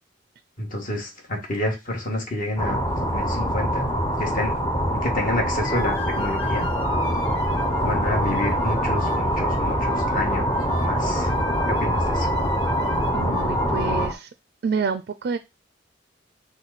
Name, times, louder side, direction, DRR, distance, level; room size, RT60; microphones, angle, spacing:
voice 1, 0.6-3.9 4.2-4.5 4.9-6.7 7.8-10.5 10.8-11.3 11.7-12.3, left 1 dB, 50° left, 1.5 m, -29 dB
sound 1, 2.6-14.1, equal, 20° left, 0.7 m, -24 dB
sound 2, 5.6-14.1, left 2 dB, 80° left, 1.3 m, -37 dB
voice 2, 13.1-14.3 14.6-15.4, right 5 dB, 55° right, 0.4 m, -27 dB
5.9 x 2.3 x 4.0 m
head